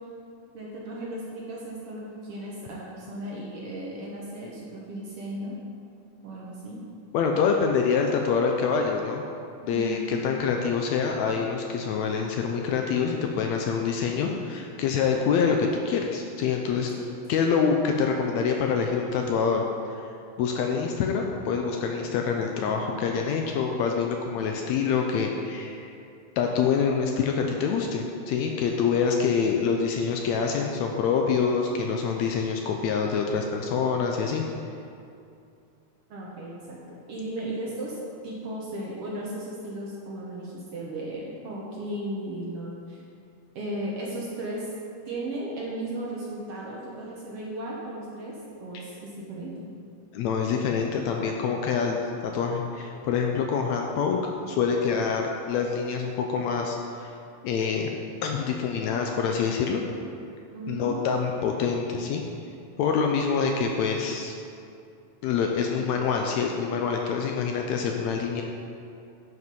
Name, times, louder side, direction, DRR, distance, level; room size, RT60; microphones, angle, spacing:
voice 1, 0.5-5.6 6.2-6.8 9.6-10.2 17.0-17.1 36.1-36.8 37.1-38.0 38.2-43.0 43.6-44.7 45.1-49.7 51.4-51.6 60.5-61.1, right 1 dB, 60° right, -4 dB, 1.7 m, -35 dB
voice 2, 7.1-9.2 9.7-16.9 17.3-19.6 20.0-20.1 20.4-25.9 26.4-34.4 50.1-54.2 54.5-57.1 57.4-57.9 58.2-59.8 60.7-62.2 62.8-64.4 65.2-68.4, left 6 dB, 75° left, 2 dB, 1.7 m, -26 dB
9.5 x 5.2 x 5.3 m, 2.5 s
omnidirectional pair, 3.5 m